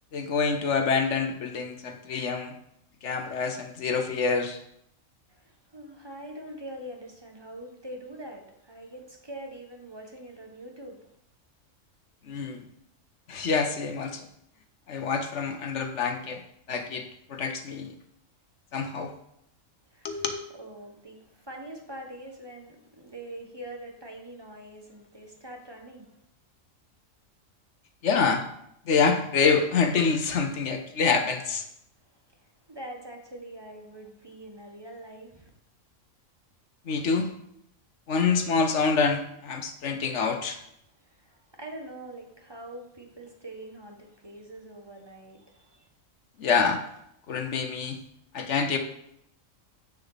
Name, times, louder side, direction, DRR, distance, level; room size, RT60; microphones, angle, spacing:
voice 1, 0.1-2.5 3.0-4.6 12.3-12.6 13.3-14.3 14.9-16.4 16.7-17.9 18.7-19.1 20.0-20.4 28.0-28.4 28.9-31.6 36.9-37.3 38.1-40.6 46.4-46.8 47.3-48.0 48.3-48.8, left 5 dB, 65° left, 6 dB, 1.1 m, -26 dB
voice 2, 5.3-11.1 19.9-20.2 20.6-26.2 32.1-35.5 41.0-45.9, right 1 dB, 20° right, 2 dB, 1.2 m, -44 dB
8.3 x 6.7 x 4.0 m, 0.75 s
omnidirectional pair, 1.4 m